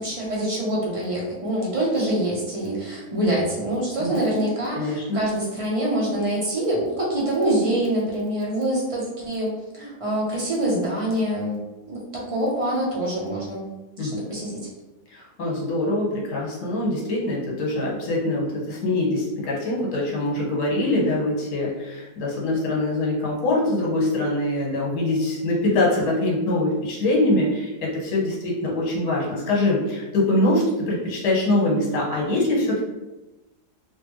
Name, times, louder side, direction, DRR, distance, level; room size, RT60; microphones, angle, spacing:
voice 1, 0.0-11.6 11.9-13.6 14.0-14.5, right 1 dB, 35° right, -5 dB, 0.5 m, -25 dB
voice 2, 4.0-4.5 4.7-5.2 14.0-14.1 15.1-32.8, left 1 dB, 75° left, -4 dB, 1.5 m, -23 dB
3.2 x 2.6 x 3.0 m, 1.0 s
omnidirectional pair, 1.7 m